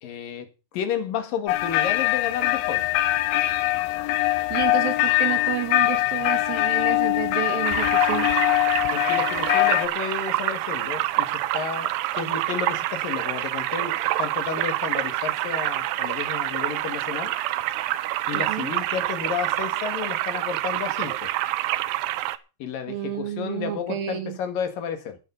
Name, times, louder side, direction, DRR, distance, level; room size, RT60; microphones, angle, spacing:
voice 1, 0.0-3.2 8.9-17.3 18.3-21.3 22.6-25.2, left 7 dB, 65° left, 3.4 m, -32 dB
sound 1, 1.5-9.9, left 16 dB, 80° left, 2.9 m, -22 dB
voice 2, 4.5-8.3 18.3-18.8 22.9-24.4, right 10 dB, 65° right, 3.3 m, -30 dB
sound 2, 7.6-22.4, right 15 dB, 85° right, 2.8 m, -27 dB
11.0 x 10.5 x 6.4 m
omnidirectional pair, 4.6 m